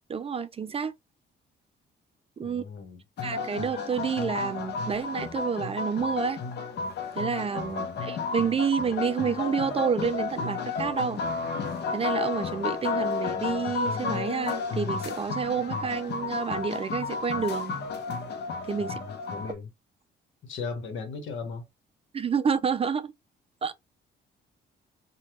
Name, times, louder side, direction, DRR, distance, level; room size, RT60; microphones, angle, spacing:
voice 1, 0.1-0.9 2.4-2.6 3.2-6.4 7.2-11.2 11.9-17.8 18.7-19.0 22.1-23.1 23.6-23.7, right 6 dB, 30° right, 0.4 m, -29 dB
voice 2, 2.4-3.0 7.7-8.1 18.8-19.7 20.4-21.7, left 4 dB, 75° left, 1.1 m, -38 dB
sound 1, 3.2-19.5, left 4 dB, 55° left, 0.7 m, -32 dB
3.2 x 2.2 x 2.8 m
cardioid pair, 90°, 20 cm